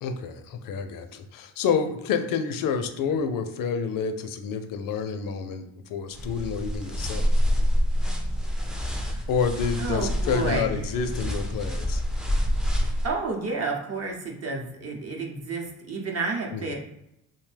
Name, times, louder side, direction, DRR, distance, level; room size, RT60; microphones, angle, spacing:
voice 1, 0.0-7.3 9.3-12.0 16.5-16.7, left 6 dB, 60° left, 7 dB, 0.5 m, -28 dB
sound 1, 6.1-13.1, equal, ahead, 0.4 m, -27 dB
voice 2, 9.8-10.8 13.0-16.7, right 3 dB, 40° right, 1 dB, 0.7 m, -30 dB
2.6 x 2.1 x 3.3 m, 0.82 s
supercardioid pair, 75°, 38 cm